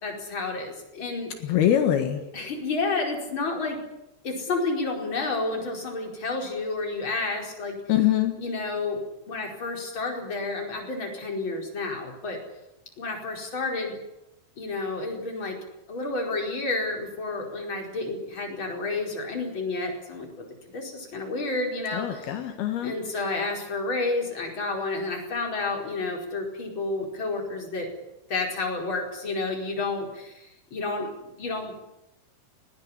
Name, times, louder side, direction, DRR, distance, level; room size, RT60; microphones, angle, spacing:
voice 1, 0.0-1.5 2.3-3.8 4.2-7.8 8.4-12.4 13.0-14.0 14.6-15.6 15.9-20.5 20.7-22.4 22.8-27.9 28.3-31.7, left 3 dB, 30° left, 1 dB, 5.4 m, -30 dB
voice 2, 1.5-2.2 7.9-8.3 21.9-22.9, left 11 dB, 80° left, 6 dB, 3.6 m, -23 dB
20.0 x 19.5 x 10.0 m, 0.91 s
omnidirectional pair, 4.4 m